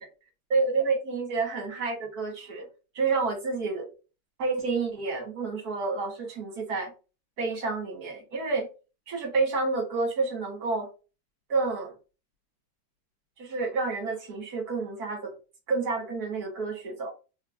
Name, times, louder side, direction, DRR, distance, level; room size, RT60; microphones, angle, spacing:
voice 1, 0.5-2.7 3.0-3.9 4.4-6.9 7.4-8.7 9.1-10.9 11.5-11.9 13.4-15.3 15.7-17.1, right 4 dB, 60° right, 1.9 m, -29 dB
3.6 x 3.3 x 2.5 m
omnidirectional pair, 1.9 m